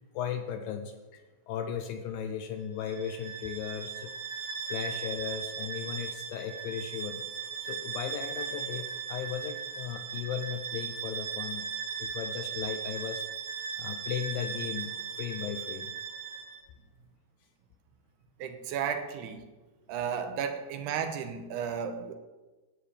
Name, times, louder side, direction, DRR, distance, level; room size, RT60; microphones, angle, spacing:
voice 1, 0.2-4.1 4.4-7.2 7.6-11.7 12.0-13.2 13.8-15.9, left 8 dB, 80° left, 7 dB, 2.1 m, -36 dB
Bowed string instrument, 2.8-16.6, right 7 dB, 50° right, 2.2 m, -38 dB
voice 2, 18.4-19.4 19.9-22.2, right 7 dB, 85° right, 8 dB, 2.9 m, -33 dB
14.0 x 5.1 x 8.9 m, 1.2 s
omnidirectional pair, 4.6 m